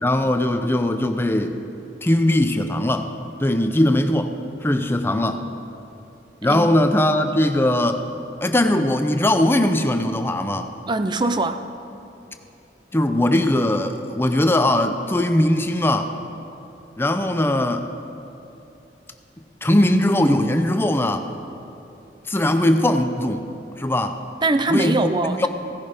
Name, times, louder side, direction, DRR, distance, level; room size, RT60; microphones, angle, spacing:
voice 1, 0.0-1.6 2.0-3.1 3.4-4.3 4.6-5.4 6.4-8.0 8.4-10.7 12.9-16.1 17.0-17.8 19.6-21.3 22.3-23.4 23.8-24.2 24.7-25.5, left 1 dB, 15° left, 7 dB, 0.6 m, -20 dB
voice 2, 10.9-11.6 24.4-25.5, right 2 dB, 25° right, 10 dB, 0.6 m, -22 dB
16.0 x 11.0 x 5.1 m, 2.9 s
head